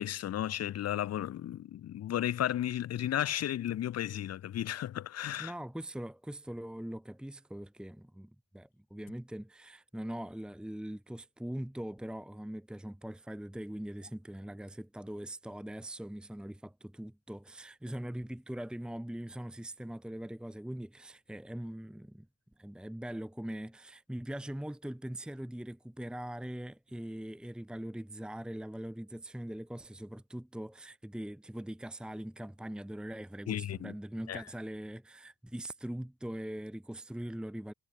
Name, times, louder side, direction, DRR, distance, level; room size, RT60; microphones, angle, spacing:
voice 1, 0.0-5.5 33.5-33.9 34.3-34.4, left 11 dB, 55° left, 0.8 m, -34 dB
voice 2, 5.4-22.3 22.6-37.7, right 1 dB, 5° right, 1.3 m, -42 dB
cardioid pair, 90°, 30 cm